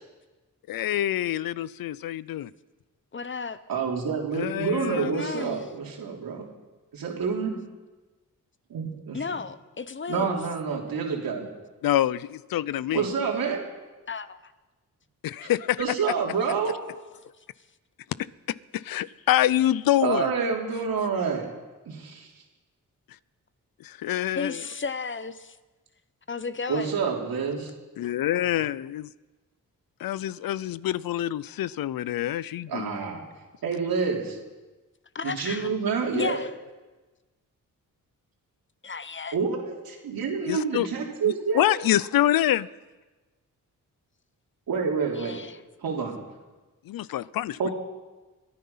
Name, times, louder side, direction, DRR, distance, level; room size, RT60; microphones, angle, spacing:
voice 1, 0.7-2.5 4.3-5.2 11.8-13.0 15.2-15.8 18.7-20.3 23.8-24.6 28.0-29.1 30.0-33.0 40.5-40.9 41.2-42.7 46.9-47.6, left 12 dB, 80° left, 0.5 m, -26 dB
voice 2, 3.1-3.6 4.9-5.7 9.1-10.4 14.1-14.5 24.3-25.6 26.3-27.0 35.1-35.7 36.1-36.5 38.8-39.4 45.2-45.6, left 5 dB, 35° left, 0.9 m, -33 dB
voice 3, 3.7-6.5 6.9-7.6 8.7-9.2 10.1-11.5 12.9-13.6 15.4-15.5 15.8-16.7 20.0-21.5 21.9-22.3 26.7-27.7 32.7-33.2 33.6-34.4 35.2-36.4 39.3-41.7 44.7-45.4 45.8-46.2 47.6-47.7, right 5 dB, 85° right, 3.5 m, -28 dB
24.0 x 9.6 x 5.7 m
cardioid pair, 70°, 34 cm